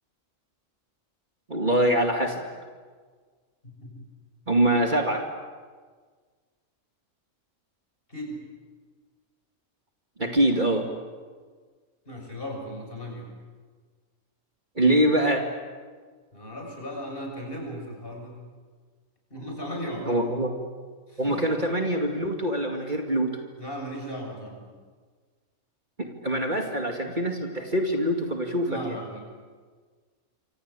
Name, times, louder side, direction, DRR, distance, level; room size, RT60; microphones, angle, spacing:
voice 1, 1.5-2.4 4.5-5.2 10.2-10.9 14.8-15.5 20.1-20.5 21.2-23.4 26.0-29.0, right 1 dB, 35° right, 3 dB, 2.5 m, -24 dB
voice 2, 3.6-4.1 8.1-8.4 12.1-13.3 16.3-18.4 19.3-20.2 21.1-21.4 23.6-24.7 28.6-29.2, equal, 45° left, 1 dB, 7.3 m, -36 dB
27.5 x 25.5 x 8.4 m, 1.5 s
omnidirectional pair, 1.4 m